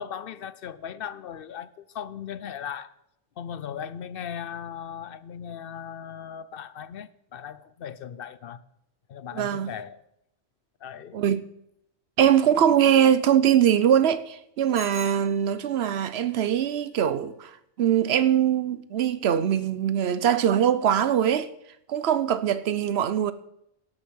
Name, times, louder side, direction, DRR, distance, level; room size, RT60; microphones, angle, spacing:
voice 1, 0.0-2.9 3.4-8.6 9.1-10.0 10.8-11.2, left 8 dB, 65° left, 0.8 m, -38 dB
voice 2, 9.3-9.7 11.1-11.4 12.2-21.5 21.9-23.3, right 9 dB, 90° right, 1.0 m, -22 dB
Bicycle bell, 14.7-16.0, equal, 30° left, 2.7 m, -42 dB
17.0 x 6.5 x 6.3 m
omnidirectional pair, 1.0 m